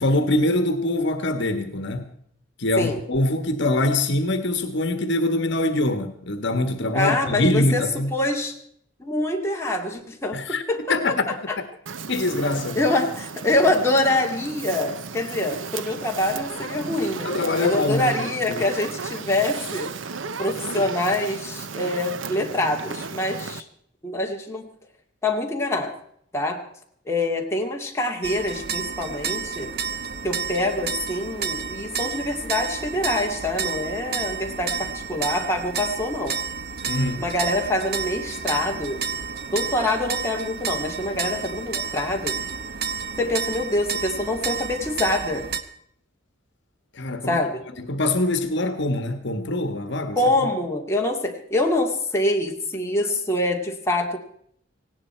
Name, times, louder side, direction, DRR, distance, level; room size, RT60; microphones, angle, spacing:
voice 1, 0.0-2.1 2.6-8.2 10.3-10.6 10.9-11.3 12.1-12.8 17.2-18.6 20.8-20.9 36.8-37.3 46.9-47.4 47.8-50.2, left 2 dB, 65° left, 1.5 m, -24 dB
voice 2, 6.9-7.8 8.1-8.5 9.0-11.0 11.3-11.6 12.8-17.3 17.6-19.9 20.4-23.7 24.0-24.7 25.2-25.9 26.3-26.6 27.1-29.7 30.2-36.4 37.2-39.0 39.5-42.4 43.2-45.5 47.3-47.6 50.2-54.2, left 1 dB, 15° left, 2.4 m, -25 dB
Fire, 11.9-23.6, right 5 dB, 70° right, 0.8 m, -34 dB
sound 1, 28.2-45.6, right 6 dB, 55° right, 1.2 m, -30 dB
18.5 x 17.5 x 4.5 m
head